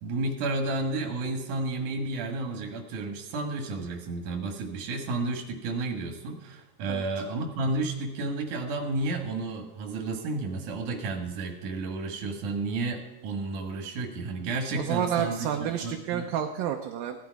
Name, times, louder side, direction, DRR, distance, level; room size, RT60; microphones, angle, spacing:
voice 1, 0.0-16.3, right 2 dB, 60° right, 3 dB, 2.9 m, -32 dB
voice 2, 14.7-17.2, right 9 dB, 75° right, 3 dB, 2.4 m, -30 dB
17.0 x 11.5 x 4.7 m, 1.2 s
omnidirectional pair, 4.5 m